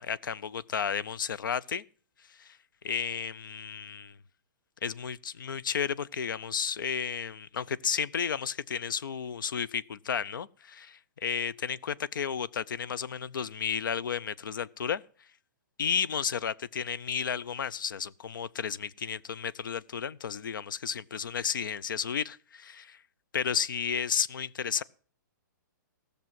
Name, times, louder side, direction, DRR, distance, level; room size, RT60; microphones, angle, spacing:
voice 1, 0.0-1.8 2.3-2.6 2.8-4.1 4.8-15.0 15.8-23.0 23.3-24.8, left 7 dB, 75° left, 0.6 m, -32 dB
15.0 x 6.8 x 7.6 m
hypercardioid pair, 180°, 11 cm